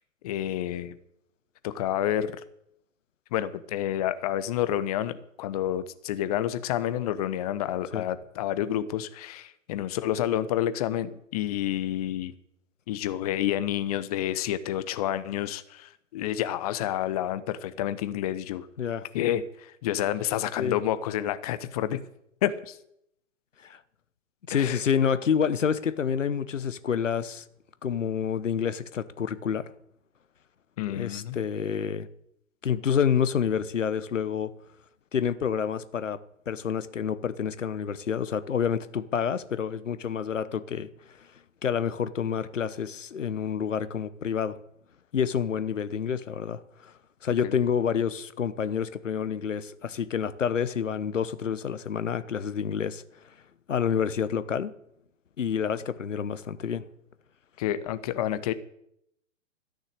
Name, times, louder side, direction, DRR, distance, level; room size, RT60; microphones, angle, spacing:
voice 1, 0.2-1.0 1.6-2.4 3.3-12.3 12.9-18.7 19.1-22.0 22.4-22.8 24.5-24.8 30.8-31.4 47.4-47.6 57.6-58.5, left 11 dB, 30° left, 14 dB, 0.7 m, -29 dB
voice 2, 24.5-27.4 27.8-29.6 30.9-32.1 32.6-34.5 35.1-36.2 36.5-40.9 41.6-44.6 45.1-46.9 47.2-53.0 53.7-54.7 55.4-56.8, left 7 dB, 70° left, 14 dB, 1.0 m, -28 dB
13.5 x 6.5 x 8.2 m, 0.76 s
figure-of-eight pair, 120°, 39 cm